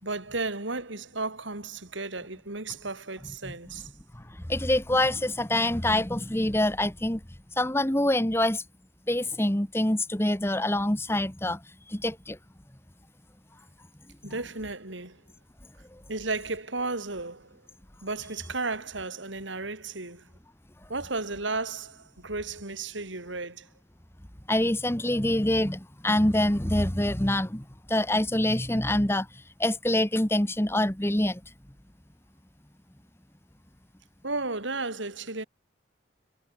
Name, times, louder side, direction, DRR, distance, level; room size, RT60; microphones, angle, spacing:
voice 1, 0.0-3.9 14.2-15.2 16.1-17.6 18.0-20.3 20.9-23.7 34.2-35.4, right 3 dB, 75° right, 3.8 m, -34 dB
voice 2, 4.5-7.2 7.6-8.6 9.1-11.6 11.9-12.4 15.9-16.0 24.5-29.3 29.6-31.4, left 1 dB, 15° left, 1.6 m, -25 dB
head